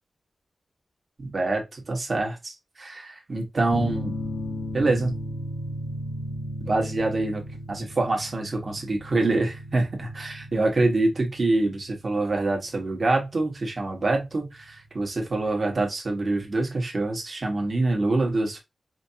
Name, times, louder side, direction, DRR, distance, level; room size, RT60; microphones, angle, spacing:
voice 1, 1.2-4.2 4.7-5.2 6.6-7.4 7.7-18.6, right 2 dB, 40° right, 1.4 m, -25 dB
sound 1, 3.7-14.9, equal, 65° left, 1.0 m, -36 dB
5.1 x 2.6 x 2.8 m
wide cardioid pair, 165°, 0 cm